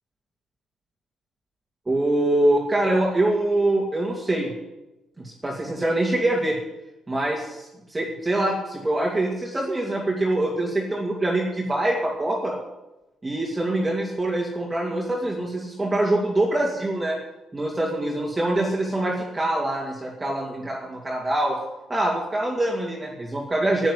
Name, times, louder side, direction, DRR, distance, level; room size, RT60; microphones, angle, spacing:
voice 1, 1.9-4.5 5.2-6.6 7.1-12.6 13.2-17.2 17.5-21.6 21.9-23.9, right 1 dB, 20° right, -2 dB, 2.6 m, -24 dB
10.5 x 9.0 x 9.7 m, 0.98 s
cardioid pair, 90°, 0 cm